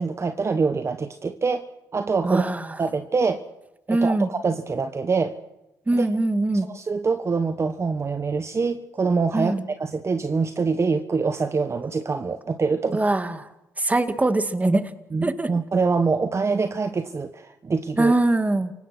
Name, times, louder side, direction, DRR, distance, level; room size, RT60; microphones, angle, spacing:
voice 1, 0.0-1.6 1.9-2.5 2.8-3.4 3.9-5.4 5.9-6.1 6.7-13.0 15.1-18.1, right 4 dB, 40° right, 8 dB, 1.3 m, -25 dB
voice 2, 2.2-2.6 3.9-4.3 5.9-6.7 9.3-9.6 12.9-13.3 13.8-14.8 15.2-15.5 18.0-18.7, right 2 dB, 20° right, 9 dB, 2.1 m, -22 dB
29.5 x 18.0 x 6.1 m, 0.92 s
supercardioid pair, 55°, 7 cm